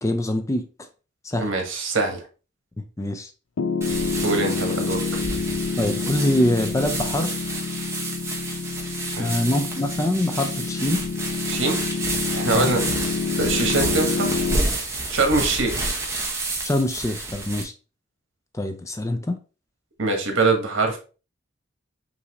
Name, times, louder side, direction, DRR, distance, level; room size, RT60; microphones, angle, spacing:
voice 1, 0.0-0.7 1.2-1.5 2.8-3.3 5.8-7.4 9.2-11.0 12.5-12.7 16.6-17.7 18.5-19.4, left 1 dB, 15° left, 0.4 m, -24 dB
voice 2, 1.4-2.2 4.2-5.0 9.1-9.5 11.5-11.8 12.3-12.8 13.4-14.3 15.1-15.8 20.0-21.0, right 3 dB, 85° right, 1.2 m, -23 dB
Piano, 3.6-14.6, left 5 dB, 85° left, 0.4 m, -28 dB
sound 1, 3.8-17.6, right 2 dB, 15° right, 0.8 m, -29 dB
5.6 x 2.7 x 2.9 m
head